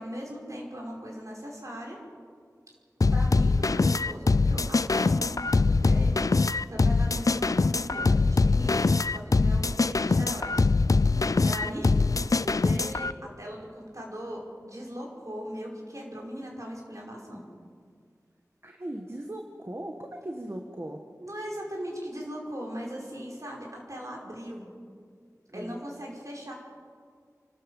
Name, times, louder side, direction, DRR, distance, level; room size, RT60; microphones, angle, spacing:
voice 1, 0.0-2.0 3.1-6.2 6.7-11.9 12.4-17.5 21.2-24.7 25.5-26.5, equal, 55° right, -1 dB, 5.4 m, -39 dB
sound 1, 3.0-13.1, left 3 dB, 65° left, 0.4 m, -23 dB
voice 2, 18.6-21.0 25.5-25.8, right 1 dB, 40° right, 3 dB, 1.5 m, -38 dB
28.5 x 12.5 x 7.3 m, 2.1 s
wide cardioid pair, 50°, 6 cm